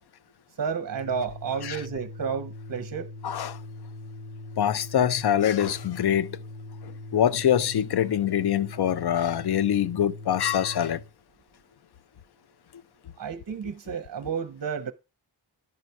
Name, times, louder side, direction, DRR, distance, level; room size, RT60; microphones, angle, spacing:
voice 1, 0.6-3.1 13.2-14.9, right 6 dB, 50° right, 0.7 m, -31 dB
Organ, 0.8-11.1, left 2 dB, 45° left, 1.3 m, -41 dB
voice 2, 3.2-3.6 4.6-6.4 6.8-11.0, left 10 dB, 60° left, 0.5 m, -24 dB
11.5 x 4.1 x 4.5 m
wide cardioid pair, 120°, 44 cm